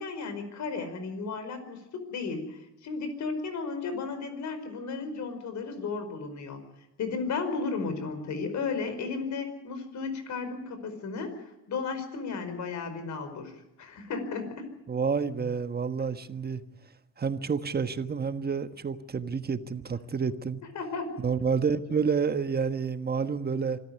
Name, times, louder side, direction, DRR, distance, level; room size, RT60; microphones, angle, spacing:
voice 1, 0.0-6.6 7.0-14.7 20.7-21.2, left 4 dB, 70° left, 5.1 m, -34 dB
voice 2, 14.9-16.6 17.2-20.6 21.2-23.8, right 5 dB, 30° right, 1.4 m, -29 dB
25.5 x 13.5 x 9.4 m
cardioid pair, 90°, 30 cm